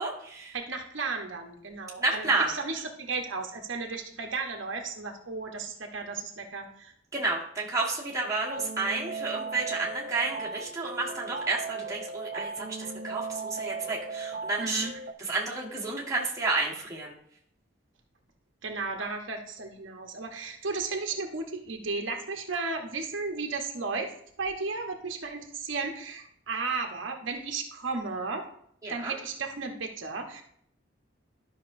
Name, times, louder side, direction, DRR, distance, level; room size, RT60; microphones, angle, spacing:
voice 1, 0.0-0.5 2.0-2.5 7.1-14.9 15.2-17.1 28.8-29.1, right 3 dB, 15° right, -5 dB, 1.4 m, -31 dB
voice 2, 0.5-6.9 14.6-14.9 18.6-24.1 24.4-28.4 28.9-30.4, right 4 dB, 85° right, 3 dB, 1.0 m, -34 dB
sound 1, 8.5-15.1, right 4 dB, 55° right, 0.4 m, -37 dB
11.5 x 5.8 x 2.6 m, 0.67 s
head